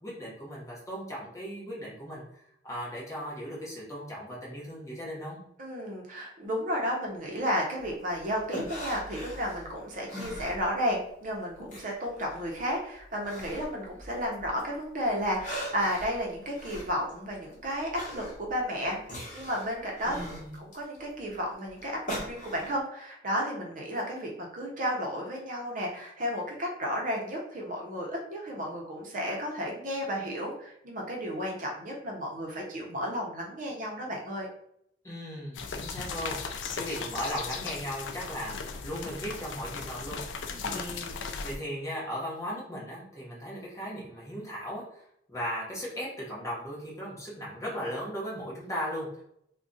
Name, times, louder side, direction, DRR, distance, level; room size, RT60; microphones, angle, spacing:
voice 1, 0.0-5.4 20.0-20.6 35.0-36.4 36.7-49.2, equal, 15° left, -5 dB, 1.0 m, -37 dB
voice 2, 5.6-19.0 19.3-20.2 20.6-34.5 40.5-40.8, equal, 45° right, -1 dB, 0.7 m, -33 dB
sound 1, 7.8-11.1 11.4-14.7 15.1-22.8, equal, 45° left, 1.0 m, -41 dB
sound 2, 35.5-41.6, left 5 dB, 90° left, 0.4 m, -37 dB
2.4 x 2.3 x 3.8 m, 0.72 s
head